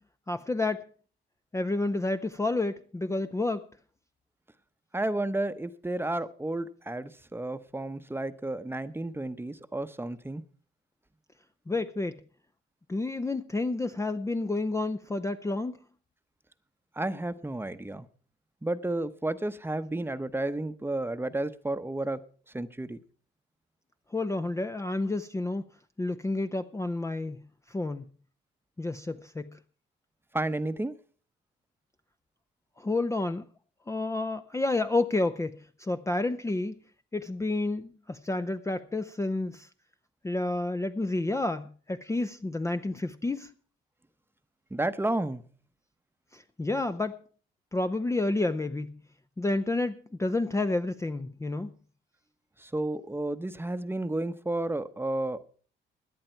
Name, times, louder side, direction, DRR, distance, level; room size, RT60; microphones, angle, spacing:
voice 1, 0.3-0.8 1.5-3.6 11.7-12.2 12.9-15.8 24.1-25.6 26.0-27.4 27.7-28.1 28.8-29.6 32.8-33.5 33.9-36.8 37.1-39.7 40.2-43.5 46.3-47.2 47.7-49.0 49.4-51.7, left 2 dB, 15° left, 0.6 m, -30 dB
voice 2, 4.9-10.4 17.0-18.0 18.6-22.2 22.5-23.0 30.3-31.0 44.7-45.4 52.6-55.4, right 2 dB, 10° right, 0.9 m, -32 dB
17.0 x 10.5 x 4.5 m
cardioid pair, 90°, 20 cm